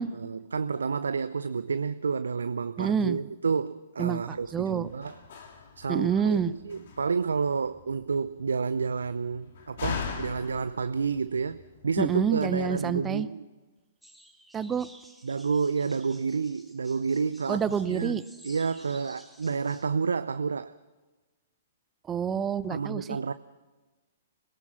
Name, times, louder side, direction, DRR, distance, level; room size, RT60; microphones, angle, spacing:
voice 1, 0.1-5.2 5.8-13.4 15.2-20.7 22.7-23.3, right 5 dB, 75° right, 0.6 m, -30 dB
voice 2, 2.8-3.2 4.0-4.9 5.9-6.5 12.0-13.3 14.5-14.9 17.5-18.2 22.1-23.1, right 7 dB, 20° right, 0.8 m, -27 dB
Slam, 4.4-12.0, left 5 dB, 55° left, 3.3 m, -41 dB
sound 1, 14.0-19.9, equal, ahead, 1.7 m, -54 dB
25.5 x 17.5 x 6.0 m
figure-of-eight pair, 115°, 0 cm